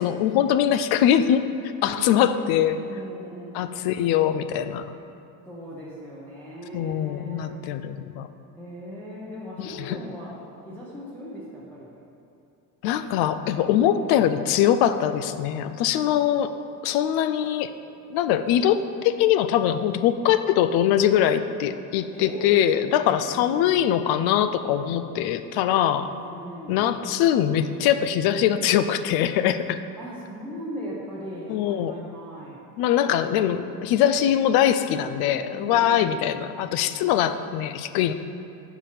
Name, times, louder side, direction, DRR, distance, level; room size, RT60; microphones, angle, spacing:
voice 1, 0.0-1.4 1.8-2.8 3.5-5.0 6.7-8.3 9.6-10.0 12.8-16.5 16.8-17.7 18.1-26.1 26.7-29.8 31.5-31.9 32.8-38.1, left 10 dB, 75° left, 11 dB, 0.5 m, -22 dB
voice 2, 1.8-3.9 5.4-7.5 8.6-10.3 10.6-12.0 13.6-14.3 22.1-22.5 23.0-23.9 26.1-26.9 30.0-32.6 35.5-36.3, equal, 5° left, -10 dB, 0.7 m, -39 dB
6.9 x 4.8 x 5.7 m, 2.6 s
cardioid pair, 180°, 37 cm